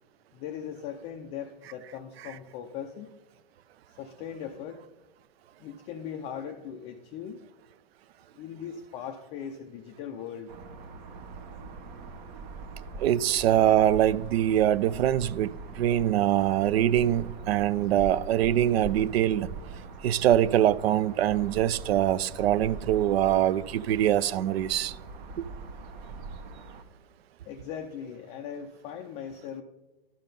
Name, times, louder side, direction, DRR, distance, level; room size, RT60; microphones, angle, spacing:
voice 1, 0.3-3.1 3.9-4.8 5.6-7.4 8.3-10.5 27.4-29.6, left 8 dB, 20° left, 0.3 m, -39 dB
sound 1, 10.5-26.8, right 4 dB, 45° right, 1.0 m, -42 dB
voice 2, 13.0-19.5 20.0-25.0, right 11 dB, 75° right, 0.5 m, -24 dB
11.5 x 5.5 x 5.3 m
hypercardioid pair, 140°, 31 cm